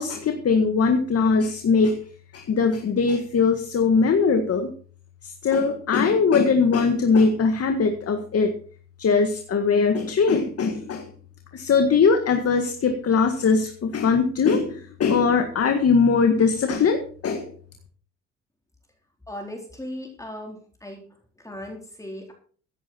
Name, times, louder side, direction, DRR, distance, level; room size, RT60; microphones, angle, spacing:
voice 1, 0.0-2.0 2.3-4.7 5.2-8.5 9.0-11.1 11.5-17.5, left 5 dB, 50° left, 6 dB, 1.8 m, -21 dB
voice 2, 19.3-21.0 21.4-22.3, left 1 dB, 10° left, 1 dB, 4.0 m, -37 dB
15.0 x 11.0 x 4.5 m, 0.43 s
cardioid pair, 90°, 30 cm